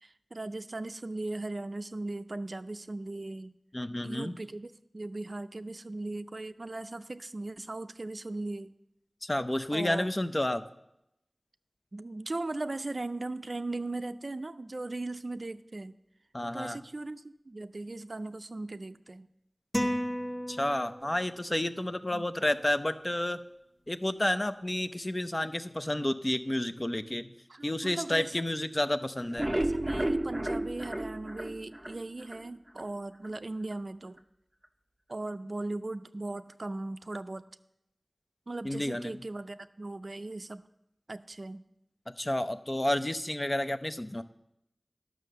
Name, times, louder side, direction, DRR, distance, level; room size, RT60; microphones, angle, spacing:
voice 1, 0.0-3.5 4.0-8.7 9.7-10.1 11.9-15.9 16.5-19.3 22.1-22.3 27.5-28.5 29.5-34.2 35.1-37.4 38.5-40.6 41.1-41.6, right 2 dB, 60° right, 12 dB, 0.4 m, -38 dB
voice 2, 3.7-4.3 9.2-10.6 16.3-16.8 20.5-23.4 23.9-27.3 27.6-29.5 38.6-39.2 42.2-44.2, left 1 dB, 30° left, 10 dB, 0.6 m, -30 dB
sound 1, 19.7-21.3, equal, 15° left, 1.0 m, -32 dB
sound 2, 29.2-32.4 32.8-32.9 33.2-33.3 33.7-33.8, right 1 dB, 15° right, 0.7 m, -32 dB
11.0 x 6.2 x 6.7 m, 0.84 s
wide cardioid pair, 45°, 0 cm